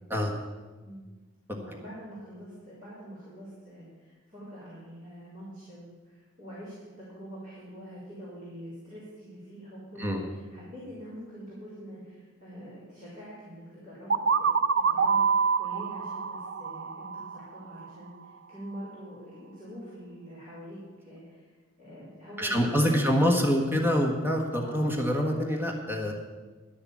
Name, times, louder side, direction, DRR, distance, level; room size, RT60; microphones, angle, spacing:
voice 1, 1.5-14.5 14.8-20.8 21.0-21.5 21.8-23.3 24.6-24.8, equal, 40° right, -11 dB, 4.1 m, -45 dB
sound 1, 14.1-17.9, right 5 dB, 60° right, 0.5 m, -26 dB
voice 2, 22.4-26.1, equal, 10° right, 1 dB, 1.4 m, -25 dB
11.5 x 6.7 x 8.4 m, 1.3 s
head